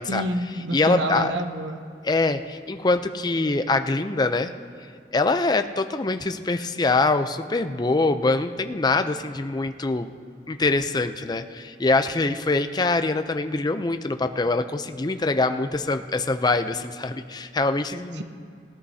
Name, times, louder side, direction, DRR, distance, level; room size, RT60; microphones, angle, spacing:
voice 1, 0.1-1.8 18.2-18.3, right 1 dB, 85° right, 7 dB, 0.8 m, -27 dB
voice 2, 0.7-1.3 2.0-4.5 5.1-10.1 10.5-18.2, left 3 dB, 25° left, 8 dB, 0.5 m, -24 dB
20.5 x 13.0 x 2.8 m, 2.3 s
head